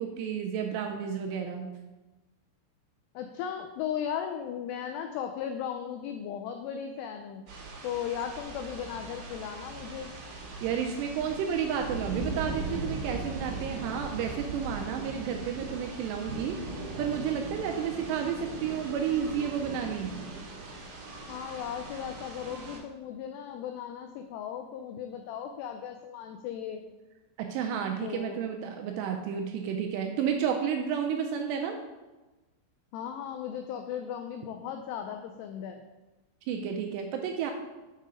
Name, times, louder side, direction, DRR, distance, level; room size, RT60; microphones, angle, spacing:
voice 1, 0.0-1.7 10.6-16.6 17.0-20.2 27.4-31.8 36.5-37.5, right 7 dB, 85° right, 3 dB, 2.5 m, -31 dB
voice 2, 3.2-7.4 7.8-10.1 21.3-26.8 28.0-28.4 32.9-35.9, left 8 dB, 85° left, 5 dB, 2.4 m, -36 dB
sound 1, 7.5-22.8, right 3 dB, 60° right, 2.2 m, -39 dB
6.8 x 5.5 x 5.1 m, 1.1 s
omnidirectional pair, 5.3 m